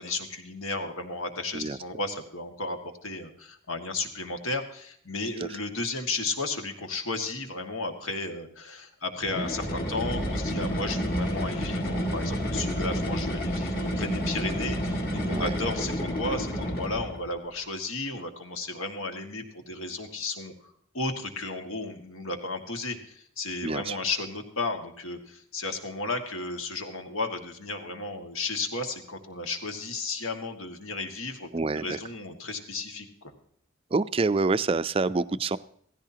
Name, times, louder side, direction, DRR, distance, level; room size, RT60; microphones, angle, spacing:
voice 1, 0.0-33.3, left 3 dB, 80° left, 5 dB, 1.9 m, -34 dB
sound 1, 9.2-17.3, equal, 45° left, 2.2 m, -30 dB
voice 2, 15.3-15.6 23.6-24.0 31.5-32.0 33.9-35.6, right 3 dB, 25° right, 14 dB, 0.4 m, -27 dB
16.0 x 15.5 x 2.8 m, 0.66 s
head